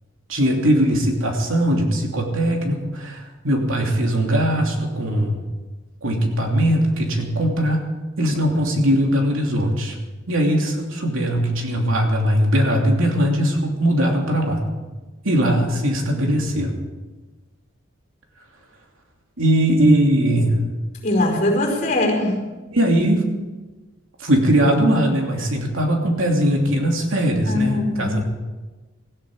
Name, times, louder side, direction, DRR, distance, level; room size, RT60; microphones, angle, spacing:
voice 1, 0.3-5.4 6.0-7.9 8.2-10.0 10.3-14.6 15.2-16.7 19.4-20.6 22.7-23.3 24.2-28.2, equal, 75° right, 1 dB, 2.9 m, -20 dB
voice 2, 21.0-22.4 27.5-28.2, left 1 dB, 40° left, 1 dB, 4.8 m, -21 dB
17.5 x 16.0 x 5.0 m, 1.2 s
head